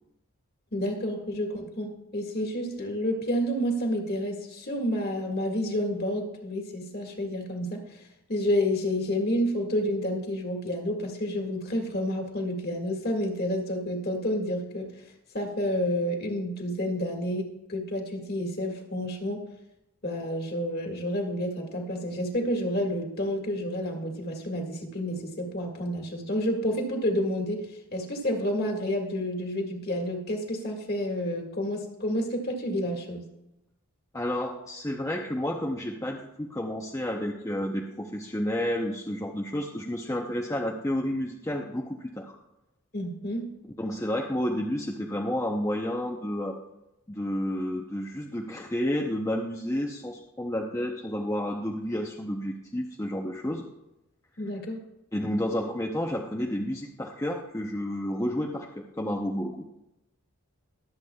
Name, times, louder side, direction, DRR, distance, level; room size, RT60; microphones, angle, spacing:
voice 1, 0.7-7.8 8.3-14.9 15.3-19.4 20.0-33.2 42.9-43.5 54.4-54.8, equal, 45° left, 2 dB, 1.9 m, -29 dB
voice 2, 34.1-42.3 43.6-46.6 47.1-53.6 55.1-59.6, left 1 dB, 15° left, 0 dB, 0.7 m, -31 dB
22.5 x 8.1 x 2.3 m, 0.90 s
head